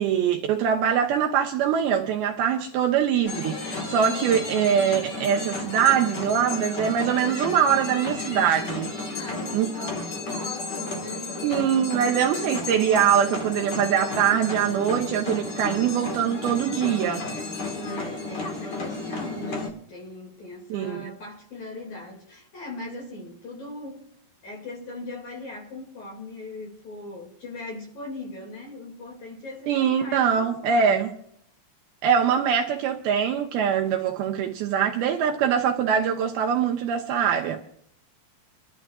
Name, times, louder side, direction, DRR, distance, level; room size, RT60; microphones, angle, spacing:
voice 1, 0.0-8.9 9.5-9.7 11.4-17.3 20.7-21.1 29.7-31.1 32.0-37.6, right 8 dB, 75° right, 2.4 m, -23 dB
sound 1, 3.2-19.7, left 3 dB, 65° left, 1.1 m, -33 dB
voice 2, 4.0-4.4 9.0-11.5 17.7-24.0 24.4-31.1, left 2 dB, 45° left, 3.2 m, -39 dB
28.0 x 12.0 x 2.4 m
omnidirectional pair, 5.0 m